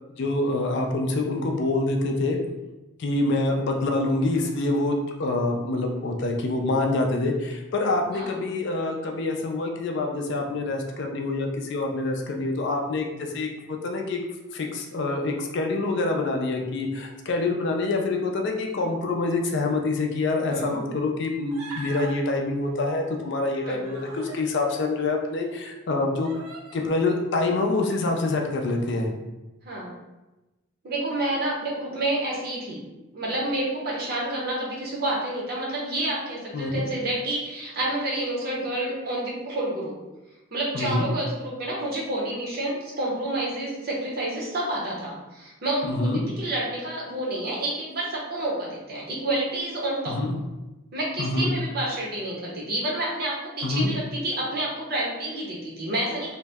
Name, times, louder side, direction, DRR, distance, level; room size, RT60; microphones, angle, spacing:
voice 1, 0.2-2.4 3.0-13.1 13.3-13.5 13.8-14.2 14.5-26.3 26.7-29.1 36.5-36.8 40.7-41.1 45.8-46.2 50.1-50.4 51.2-51.5 53.6-53.9, left 2 dB, 55° left, 2 dB, 0.4 m, -26 dB
voice 2, 20.5-20.8 23.6-23.8 29.6-29.9 30.8-32.8 33.1-39.9 40.5-50.2 50.9-56.4, right 1 dB, 45° right, -4 dB, 0.7 m, -29 dB
Human voice, 21.5-22.2 23.4-24.5 25.2-25.3 26.2-26.9, right 2 dB, 85° right, 0.5 m, -40 dB
2.6 x 2.0 x 3.4 m, 1.1 s
head